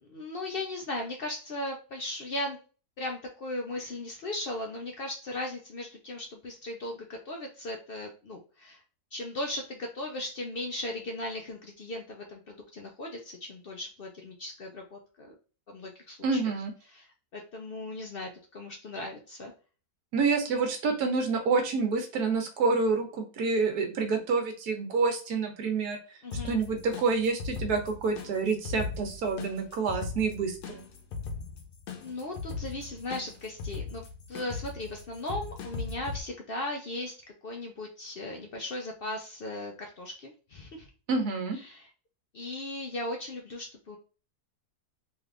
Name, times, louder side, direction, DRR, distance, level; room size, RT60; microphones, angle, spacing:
voice 1, 0.0-2.6 3.0-8.8 9.1-15.3 15.7-16.5 16.9-17.1 17.3-19.5 26.2-26.5 32.0-37.1 37.4-40.9 41.6-41.9 42.3-44.0, left 1 dB, 70° left, 1 dB, 0.5 m, -37 dB
voice 2, 16.2-16.7 20.1-26.0 26.4-30.8 41.1-41.6, right 4 dB, 75° right, 5 dB, 1.3 m, -28 dB
sound 1, 26.3-36.2, left 5 dB, 90° left, 1.3 m, -39 dB
3.3 x 3.2 x 2.4 m, 0.36 s
omnidirectional pair, 1.7 m